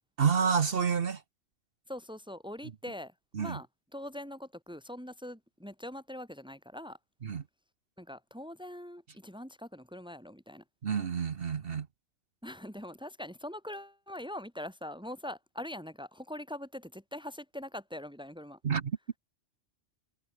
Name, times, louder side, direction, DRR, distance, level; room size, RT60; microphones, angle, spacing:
voice 1, 0.2-1.2 3.3-3.6 7.2-7.4 10.8-11.9 18.6-19.2, right 6 dB, 50° right, 1.1 m, -29 dB
voice 2, 1.9-3.1 3.4-3.7 3.9-7.0 8.0-10.6 12.4-18.6, left 1 dB, 5° right, 4.3 m, -42 dB
omnidirectional pair, 1.3 m